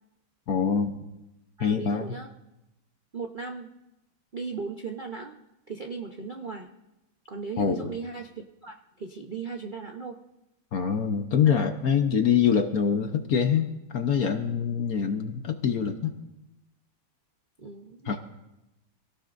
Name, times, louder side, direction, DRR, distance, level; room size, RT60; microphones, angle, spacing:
voice 1, 0.5-0.9 1.6-2.2 7.6-7.9 10.7-16.2 18.0-18.2, left 7 dB, 55° left, 6 dB, 1.2 m, -25 dB
voice 2, 1.6-2.3 3.1-3.7 4.3-5.3 5.7-6.7 7.3-10.2 17.6-18.2, right 5 dB, 55° right, 3 dB, 0.5 m, -37 dB
26.0 x 17.5 x 2.6 m, 0.94 s
omnidirectional pair, 2.3 m